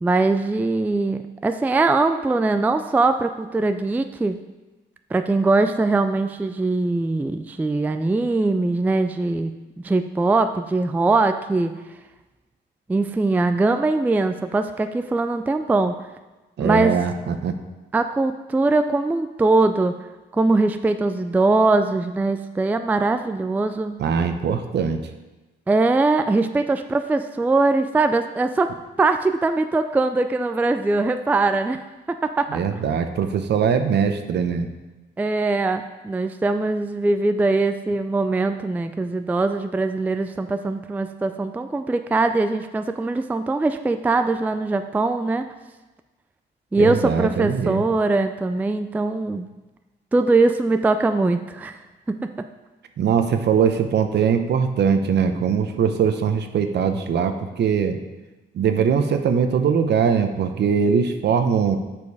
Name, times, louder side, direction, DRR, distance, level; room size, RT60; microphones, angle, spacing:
voice 1, 0.0-4.4 5.1-9.5 9.8-11.7 12.9-16.0 16.6-17.0 17.9-20.0 20.3-24.0 25.7-31.8 32.1-32.8 35.2-45.4 46.7-49.5 50.1-51.8 52.1-52.5, right 3 dB, 10° right, 9 dB, 0.3 m, -21 dB
voice 2, 16.6-17.5 24.0-25.0 32.5-34.7 46.8-47.8 53.0-58.0 58.5-61.8, right 7 dB, 60° right, 8 dB, 0.7 m, -21 dB
7.0 x 5.2 x 4.8 m, 1.1 s
cardioid pair, 90°, 20 cm